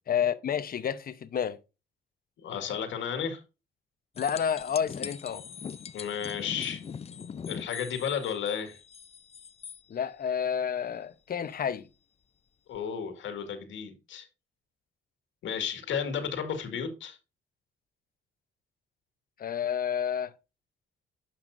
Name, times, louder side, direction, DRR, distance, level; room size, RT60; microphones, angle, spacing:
voice 1, 0.1-1.6 4.2-5.4 9.9-11.9 19.4-20.3, left 8 dB, 45° left, 0.8 m, -30 dB
voice 2, 2.4-3.4 5.9-6.8 7.5-8.8 12.7-14.3 15.4-17.2, left 7 dB, 75° left, 1.9 m, -33 dB
sound 1, 4.1-9.8 12.7-12.8, left 7 dB, 30° left, 0.5 m, -42 dB
10.5 x 5.8 x 2.6 m
cardioid pair, 90°, 20 cm